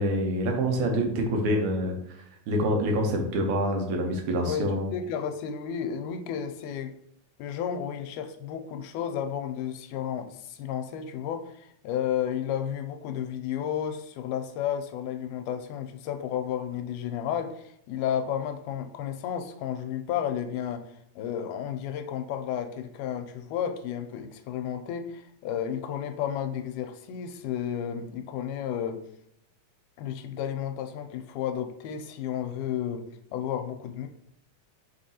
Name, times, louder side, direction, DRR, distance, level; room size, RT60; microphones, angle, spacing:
voice 1, 0.0-4.9, equal, 75° right, 2 dB, 2.2 m, -26 dB
voice 2, 4.5-6.9 7.4-29.0 30.0-33.0 33.3-34.1, left 9 dB, 80° left, 6 dB, 2.0 m, -32 dB
5.4 x 3.4 x 2.8 m, 0.73 s
omnidirectional pair, 3.7 m